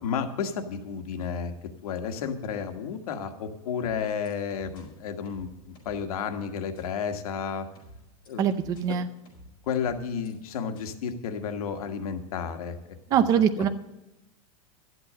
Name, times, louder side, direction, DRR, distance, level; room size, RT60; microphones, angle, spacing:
voice 1, 0.0-1.5 1.8-7.7 8.3-8.4 9.7-12.8 13.5-13.6, left 6 dB, 85° left, 6 dB, 1.5 m, -32 dB
sound 1, 3.8-4.8 5.3-6.1 6.8-6.9 7.8-8.8 9.3-10.3 10.8-10.9, left 1 dB, 25° left, 5.5 m, -50 dB
voice 2, 8.4-9.1 13.1-13.7, right 8 dB, 20° right, 10 dB, 0.5 m, -23 dB
12.5 x 8.1 x 6.4 m, 0.94 s
supercardioid pair, 175°, 18 cm